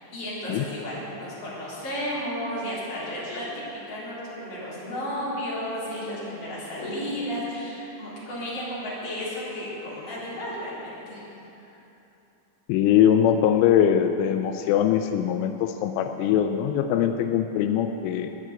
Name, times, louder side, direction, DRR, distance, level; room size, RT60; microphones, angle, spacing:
voice 1, 0.1-11.2 11.6-11.8, equal, 45° left, -9 dB, 5.1 m, -33 dB
voice 2, 12.7-18.3, left 9 dB, 90° left, 7 dB, 3.1 m, -22 dB
9.9 x 9.3 x 9.0 m, 2.9 s
omnidirectional pair, 5.5 m